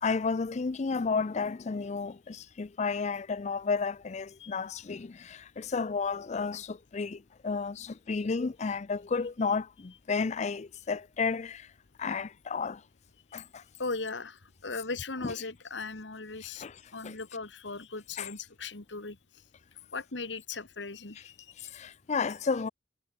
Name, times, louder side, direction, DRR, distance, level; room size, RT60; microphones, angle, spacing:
voice 1, 0.0-11.7 12.0-12.8 13.3-13.6 15.2-15.3 16.6-17.2 18.2-18.3 21.6-22.7, left 4 dB, 40° left, 0.5 m, -32 dB
voice 2, 13.8-16.7 16.9-19.2 19.9-21.7, left 3 dB, 80° left, 2.0 m, -38 dB
head